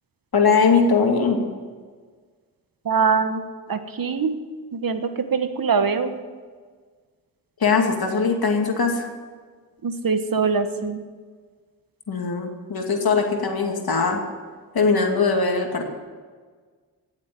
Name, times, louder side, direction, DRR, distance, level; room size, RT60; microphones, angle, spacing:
voice 1, 0.3-1.4 7.6-9.1 12.1-14.2 14.7-15.9, left 4 dB, 65° left, 3 dB, 2.5 m, -20 dB
voice 2, 2.8-3.4 3.7-4.4 4.7-6.1 9.8-11.0, right 5 dB, 60° right, 8 dB, 1.4 m, -23 dB
17.0 x 7.4 x 9.7 m, 1.6 s
cardioid pair, 50°, 39 cm